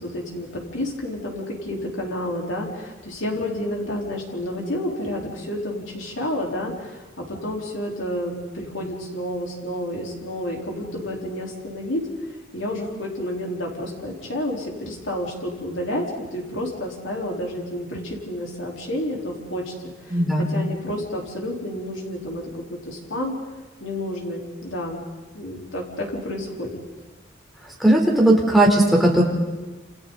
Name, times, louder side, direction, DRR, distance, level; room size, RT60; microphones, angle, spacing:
voice 1, 0.0-12.1 12.5-19.7 20.0-23.3 23.8-25.0 25.3-26.7, left 1 dB, 75° left, -1 dB, 4.4 m, -30 dB
voice 2, 20.1-20.5 27.8-29.2, right 1 dB, ahead, -2 dB, 3.9 m, -17 dB
29.0 x 28.5 x 4.2 m, 1.2 s
head